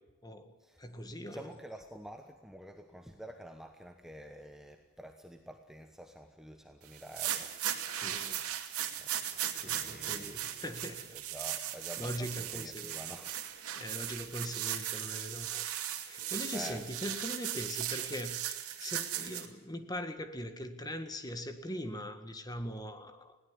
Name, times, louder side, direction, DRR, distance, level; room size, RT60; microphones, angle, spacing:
voice 1, 0.2-1.6 8.0-8.4 9.6-11.1 11.3-11.5 12.0-13.0 13.7-15.7 16.0-23.4, equal, 15° left, 8 dB, 1.7 m, -41 dB
voice 2, 1.3-7.6 9.0-10.7 11.1-13.5 16.5-16.9, equal, ahead, 5 dB, 1.1 m, -49 dB
sound 1, 6.9-19.5, right 11 dB, 90° right, 2.5 m, -37 dB
21.0 x 17.0 x 9.8 m, 1.2 s
head